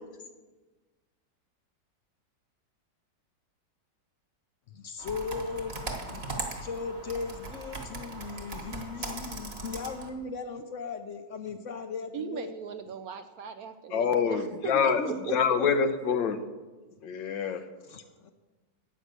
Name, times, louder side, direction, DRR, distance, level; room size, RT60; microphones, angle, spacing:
voice 1, 4.7-6.2 6.6-12.5 14.7-15.7 17.9-18.3, left 4 dB, 60° left, 8 dB, 0.8 m, -38 dB
Computer keyboard, 5.0-10.1, right 2 dB, 35° right, 1.5 m, -39 dB
voice 2, 12.1-15.4, right 7 dB, 70° right, 9 dB, 0.9 m, -38 dB
voice 3, 13.9-15.0 15.3-16.4 17.0-17.6, left 6 dB, 85° left, 8 dB, 1.6 m, -26 dB
10.5 x 8.5 x 6.7 m, 1.2 s
omnidirectional pair, 2.0 m